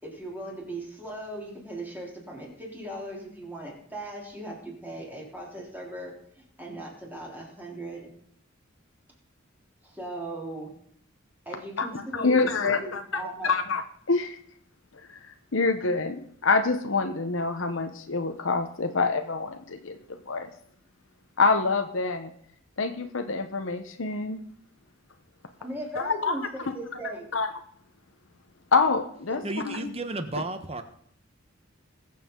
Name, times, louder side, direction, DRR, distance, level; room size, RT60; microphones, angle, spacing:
voice 1, 0.0-8.1 9.8-10.7 11.5-13.5 25.6-27.3 29.3-29.5, right 1 dB, 10° right, -2 dB, 3.6 m, -38 dB
voice 2, 12.1-13.0 13.4-13.8 14.1-14.4 15.5-20.0 20.3-20.5 21.4-22.3 22.8-24.4 26.0-26.3 27.3-27.5 28.7-29.9, left 4 dB, 75° left, 6 dB, 1.1 m, -26 dB
voice 3, 29.4-30.8, right 2 dB, 30° right, 8 dB, 1.2 m, -33 dB
21.5 x 7.6 x 3.9 m, 0.65 s
head